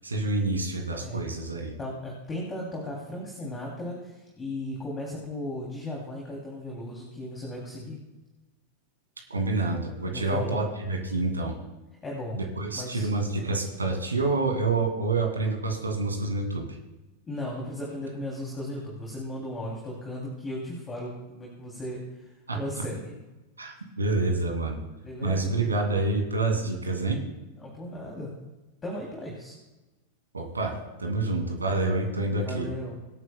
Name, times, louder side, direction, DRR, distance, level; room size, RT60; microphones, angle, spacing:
voice 1, 0.0-1.8 9.3-11.5 12.4-16.8 22.5-22.6 23.6-24.8 25.2-27.2 30.3-32.7, right 2 dB, 75° right, 2 dB, 2.3 m, -27 dB
voice 2, 1.0-1.3 1.8-8.0 10.1-10.7 12.0-12.4 12.7-13.1 17.3-23.2 25.0-25.6 27.6-28.3 28.8-29.6 32.4-33.0, left 1 dB, 15° left, -2 dB, 2.9 m, -36 dB
25.5 x 9.3 x 2.3 m, 1.1 s
figure-of-eight pair, 90°, 0 cm